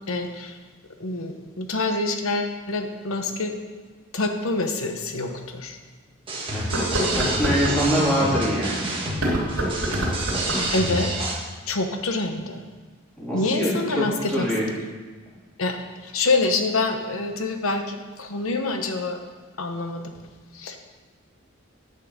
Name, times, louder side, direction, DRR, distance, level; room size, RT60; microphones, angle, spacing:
voice 1, 0.1-0.6 1.0-3.6 4.1-5.8 10.7-11.3 11.7-12.6 13.3-14.5 15.6-15.8 16.0-19.2 19.6-20.1 20.5-20.8, left 3 dB, 75° left, 5 dB, 1.0 m, -26 dB
sound 1, 4.6-4.7 5.3-5.4 6.6-7.8 9.1-10.8, right 1 dB, 80° right, 3.0 m, -26 dB
sound 2, 6.3-11.3, right 1 dB, 25° right, 1.7 m, -28 dB
voice 2, 7.1-8.8 13.2-14.7, equal, 5° left, -8 dB, 3.2 m, -24 dB
9.9 x 5.7 x 6.5 m, 1.4 s
head